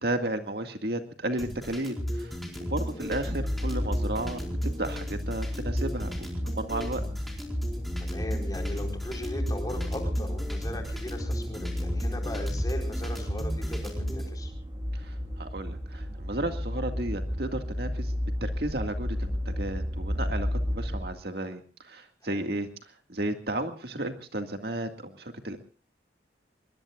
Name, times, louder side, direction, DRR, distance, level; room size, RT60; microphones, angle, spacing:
voice 1, 0.0-7.0 14.9-18.1 18.4-22.7 23.1-25.6, right 1 dB, 55° right, 5 dB, 2.1 m, -33 dB
sound 1, 1.4-14.3, equal, ahead, 4.5 m, -34 dB
sound 2, 3.1-21.1, equal, 25° right, 2.3 m, -33 dB
voice 2, 8.0-14.5 22.2-22.5, equal, 20° left, 3 dB, 4.5 m, -39 dB
25.0 x 23.0 x 2.5 m, 0.37 s
head